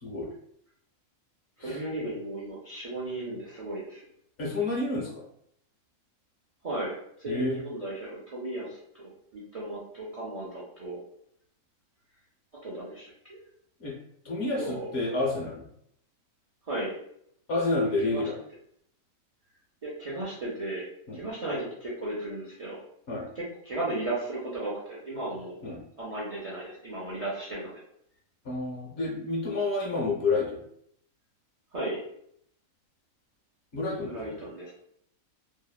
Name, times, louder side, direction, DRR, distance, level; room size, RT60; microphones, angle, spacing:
voice 1, 1.6-4.0 6.6-11.0 12.6-13.4 14.6-14.9 16.7-16.9 18.1-18.2 19.8-20.8 21.1-22.8 23.4-25.6 26.0-27.8 31.7-32.0 34.1-34.7, right 1 dB, 50° right, -7 dB, 0.4 m, -35 dB
voice 2, 4.4-5.2 7.3-7.6 13.8-13.9 14.2-15.7 17.5-18.3 21.1-21.2 23.1-23.3 25.6-25.8 28.4-30.6 33.7-34.4, left 2 dB, 60° left, -3 dB, 0.9 m, -29 dB
2.7 x 2.0 x 2.3 m, 0.70 s
omnidirectional pair, 1.4 m